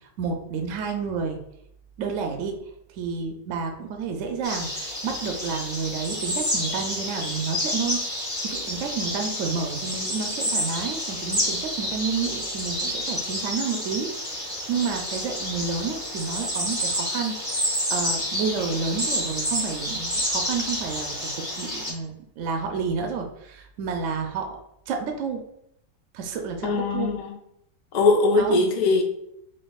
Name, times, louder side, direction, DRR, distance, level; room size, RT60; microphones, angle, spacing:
voice 1, 0.2-1.4 2.0-2.6 2.9-8.2 8.4-17.4 17.9-24.6 24.9-25.4 26.1-27.1 28.4-28.6, right 5 dB, 65° right, 3 dB, 0.8 m, -30 dB
sound 1, 4.4-21.9, equal, 5° right, 0.9 m, -29 dB
voice 2, 26.6-27.4 27.9-29.0, left 3 dB, 70° left, 2 dB, 0.4 m, -21 dB
5.4 x 2.8 x 2.3 m, 0.78 s
omnidirectional pair, 1.6 m